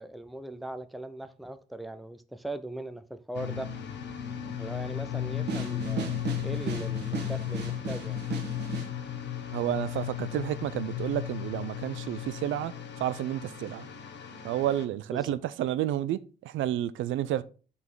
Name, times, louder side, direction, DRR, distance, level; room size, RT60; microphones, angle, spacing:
voice 1, 0.0-3.7 4.6-8.2 15.1-15.3, right 1 dB, ahead, 0.5 m, -39 dB
sound 1, 3.3-14.8, left 10 dB, 65° left, 0.9 m, -35 dB
sound 2, 5.5-8.9, right 6 dB, 60° right, 1.4 m, -36 dB
voice 2, 9.5-13.9 14.4-17.4, right 12 dB, 75° right, 0.4 m, -31 dB
5.5 x 4.1 x 4.6 m
cardioid pair, 90°, 20 cm